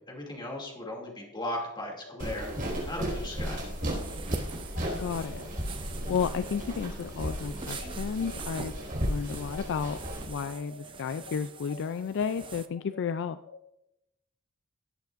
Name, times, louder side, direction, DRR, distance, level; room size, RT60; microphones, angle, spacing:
voice 1, 0.0-2.5 2.8-3.7, left 1 dB, 20° left, 0 dB, 2.6 m, -37 dB
sound 1, 0.7-10.1 10.4-13.5, left 5 dB, 90° left, 2.3 m, -50 dB
sound 2, 2.2-10.3, equal, 40° right, 4.6 m, -35 dB
sound 3, 3.7-12.7, right 4 dB, 25° right, 0.5 m, -44 dB
voice 2, 5.0-5.4 6.1-8.7 9.1-10.0 10.3-13.4, left 6 dB, 55° left, 12 dB, 0.3 m, -32 dB
18.0 x 8.2 x 2.5 m, 0.86 s
head